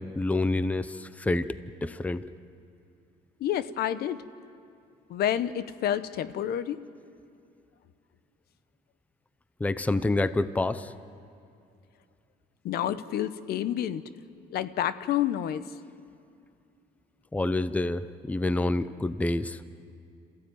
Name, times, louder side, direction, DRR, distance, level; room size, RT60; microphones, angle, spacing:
voice 1, 0.0-1.5 1.8-2.3 9.6-10.9 17.3-19.6, left 2 dB, 10° left, 14 dB, 0.6 m, -27 dB
voice 2, 3.4-4.2 5.1-6.9 12.6-14.0 14.5-15.6, left 11 dB, 70° left, 14 dB, 0.9 m, -29 dB
27.0 x 15.0 x 9.2 m, 2.5 s
cardioid pair, 110°, 17 cm